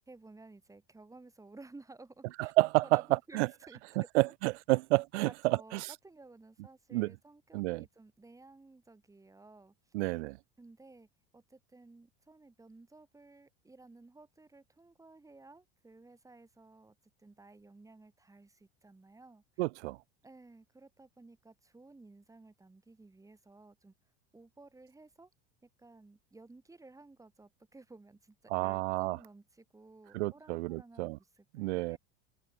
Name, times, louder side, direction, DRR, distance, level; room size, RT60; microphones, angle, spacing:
voice 1, 0.1-2.5 2.8-3.8 4.7-4.8 5.2-9.7 10.6-11.1 11.3-19.4 20.2-23.9 24.3-25.3 25.6-32.0, right 3 dB, 10° right, 3.4 m, -56 dB
voice 2, 2.4-3.5 4.0-5.9 6.9-7.1 7.5-7.8 9.9-10.4 19.6-20.0 28.5-29.2 30.1-31.2 31.5-32.0, right 21 dB, 85° right, 1.0 m, -30 dB
supercardioid pair, 125°, 33 cm